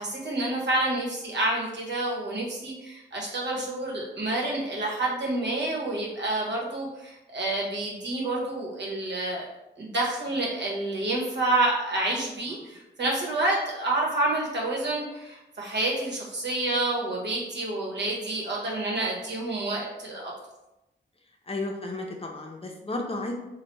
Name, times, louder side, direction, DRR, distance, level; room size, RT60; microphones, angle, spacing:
voice 1, 0.0-9.5 9.8-20.3, right 2 dB, 70° right, -3 dB, 1.0 m, -28 dB
voice 2, 21.5-23.3, left 2 dB, 30° left, 1 dB, 0.6 m, -33 dB
3.2 x 2.2 x 3.0 m, 0.94 s
cardioid pair, 60°, 19 cm